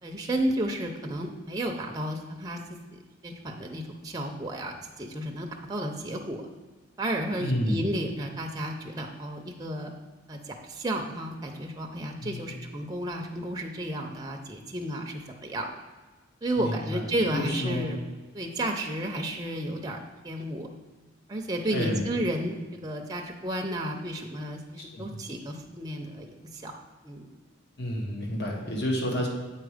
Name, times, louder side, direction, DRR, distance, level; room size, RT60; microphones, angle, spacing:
voice 1, 0.0-2.6 2.9-6.4 7.0-9.9 10.3-15.7 16.4-18.0 18.3-20.0 20.2-20.7 21.3-26.7 27.0-27.3, right 1 dB, 20° right, 2 dB, 0.6 m, -32 dB
voice 2, 7.4-7.8 12.2-12.5 16.6-17.0 17.3-17.9 21.7-22.1 24.8-25.2 27.8-29.3, equal, 60° left, 0 dB, 1.4 m, -30 dB
8.0 x 4.3 x 4.9 m, 1.2 s
head